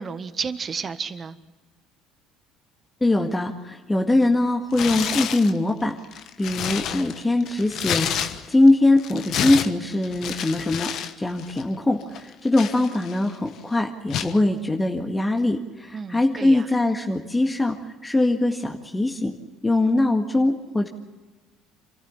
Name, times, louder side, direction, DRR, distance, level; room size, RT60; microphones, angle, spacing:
voice 1, 0.0-1.4 15.9-16.6, right 5 dB, 35° right, 11 dB, 1.4 m, -32 dB
voice 2, 3.0-6.0 6.4-17.8 18.0-19.3 19.6-20.9, left 2 dB, 15° left, 3 dB, 1.9 m, -22 dB
Tearing, 4.7-5.5 6.0-8.7 9.0-11.1 11.4-11.6 12.1-13.3 14.1-14.4, left 9 dB, 60° left, 1.3 m, -29 dB
26.5 x 14.0 x 9.6 m, 1.2 s
hypercardioid pair, 70°, 0 cm